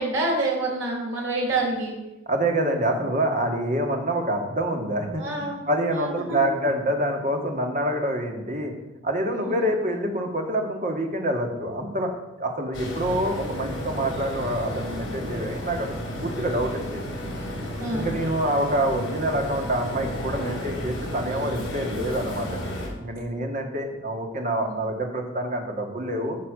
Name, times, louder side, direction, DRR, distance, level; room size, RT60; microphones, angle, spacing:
voice 1, 0.0-1.9 5.2-5.6 5.9-6.4 9.3-9.7 17.8-18.1 24.6-24.8, right 2 dB, 85° right, -2 dB, 4.3 m, -27 dB
voice 2, 2.3-8.7 9.0-12.1 12.4-15.9 16.1-17.0 17.9-22.6 23.0-26.4, right 1 dB, 40° right, 3 dB, 1.9 m, -26 dB
sound 1, 12.7-22.9, equal, 60° left, 4.6 m, -32 dB
14.5 x 5.9 x 6.5 m, 1.0 s
head